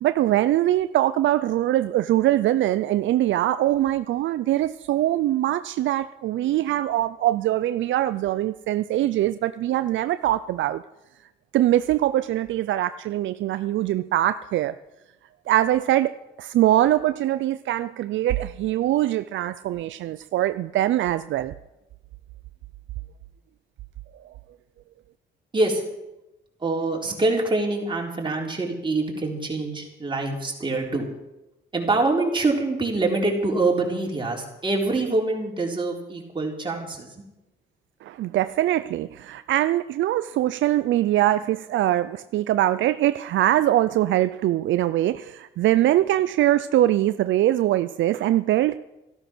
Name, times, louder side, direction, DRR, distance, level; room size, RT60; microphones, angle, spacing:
voice 1, 0.0-10.8 11.5-14.7 15.5-21.5 38.0-48.8, right 13 dB, 70° right, 13 dB, 0.5 m, -22 dB
voice 2, 26.6-31.1 31.7-37.2, right 2 dB, 25° right, -1 dB, 3.7 m, -25 dB
14.0 x 12.0 x 6.2 m, 0.96 s
cardioid pair, 90°, 20 cm